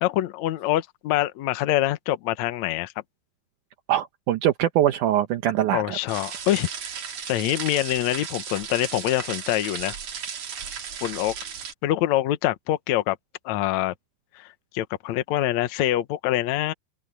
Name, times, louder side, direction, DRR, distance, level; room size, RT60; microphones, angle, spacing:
voice 1, 0.0-2.9 5.7-6.7 7.3-9.9 11.0-11.4 11.8-13.2 13.5-13.9 14.4-14.5 14.7-16.7, left 14 dB, 70° left, 1.7 m, -25 dB
voice 2, 3.9-6.0, right 12 dB, 75° right, 1.8 m, -23 dB
sound 1, 6.1-11.7, right 7 dB, 45° right, 2.7 m, -35 dB
omnidirectional pair, 4.7 m